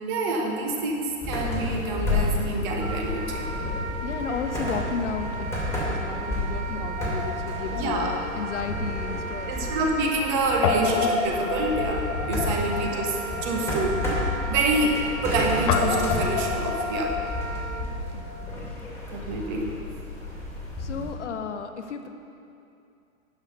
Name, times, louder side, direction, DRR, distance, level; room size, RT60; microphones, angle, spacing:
voice 1, 0.1-3.5 7.7-8.1 9.5-14.0 14.5-17.2 19.1-19.8, right 2 dB, 35° right, 1 dB, 1.4 m, -27 dB
sound 1, 1.2-21.1, left 2 dB, 5° left, 2.1 m, -31 dB
Wind instrument woodwind instrument, 2.8-17.9, right 4 dB, 70° right, 1.0 m, -37 dB
voice 2, 4.0-9.8 12.5-12.8 18.1-18.3 20.8-22.1, left 6 dB, 55° left, 6 dB, 0.8 m, -34 dB
Guitar, 7.0-9.4 9.6-9.8 10.6-18.5, left 6 dB, 25° left, 0.6 m, -30 dB
11.0 x 6.6 x 5.5 m, 2.6 s
figure-of-eight pair, 115°, 42 cm